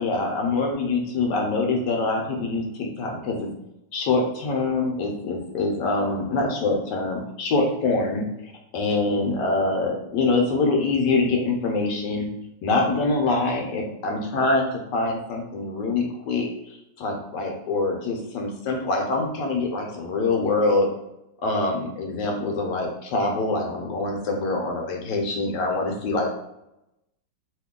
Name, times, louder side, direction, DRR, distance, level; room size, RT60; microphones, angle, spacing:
voice 1, 0.0-3.5 3.9-12.3 12.6-16.5 17.0-20.9 21.4-26.3, left 3 dB, 70° left, 1 dB, 1.1 m, -24 dB
2.9 x 2.6 x 3.6 m, 0.88 s
omnidirectional pair, 2.0 m